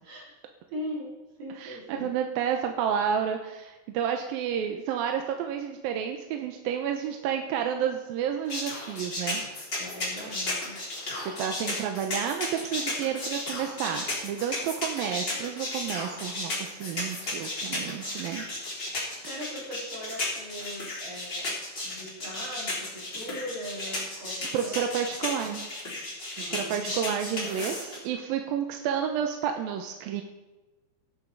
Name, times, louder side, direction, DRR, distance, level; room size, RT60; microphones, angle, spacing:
voice 1, 0.7-1.1 1.4-2.2 9.8-10.8 19.3-21.6 21.8-24.9 26.4-27.4, equal, 55° right, -5 dB, 5.9 m, -40 dB
voice 2, 1.6-9.4 11.2-18.5 24.5-25.7 26.4-30.2, right 8 dB, 75° right, 4 dB, 2.4 m, -30 dB
sound 1, 8.5-28.0, left 2 dB, 25° left, 3.9 m, -34 dB
17.0 x 9.5 x 4.6 m, 1.1 s
omnidirectional pair, 4.7 m